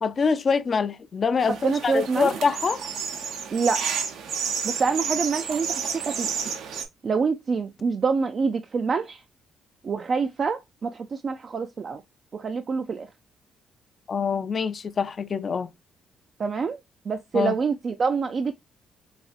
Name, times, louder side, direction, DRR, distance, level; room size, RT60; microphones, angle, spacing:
voice 1, 0.0-2.8 14.1-15.7 17.3-17.6, left 5 dB, 45° left, 0.4 m, -25 dB
sound 1, 1.4-6.9, right 6 dB, 80° right, 0.7 m, -31 dB
voice 2, 1.6-2.3 3.5-3.9 4.6-6.3 7.0-9.2 9.8-12.0 12.3-13.1 16.4-16.8 17.1-18.5, right 5 dB, 45° right, 0.3 m, -26 dB
4.0 x 2.4 x 2.3 m
cardioid pair, 90°, 0 cm